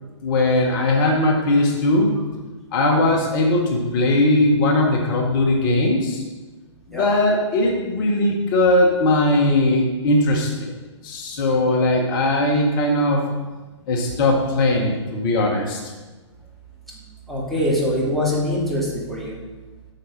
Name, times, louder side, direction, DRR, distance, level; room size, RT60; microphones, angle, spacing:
voice 1, 0.2-2.1 2.7-6.2 6.9-10.5 11.0-13.2 13.9-15.8, left 1 dB, 45° left, 0 dB, 1.9 m, -19 dB
voice 2, 17.3-19.4, left 1 dB, ahead, -6 dB, 2.7 m, -23 dB
8.7 x 6.6 x 5.7 m, 1.3 s
figure-of-eight pair, 120°, 16 cm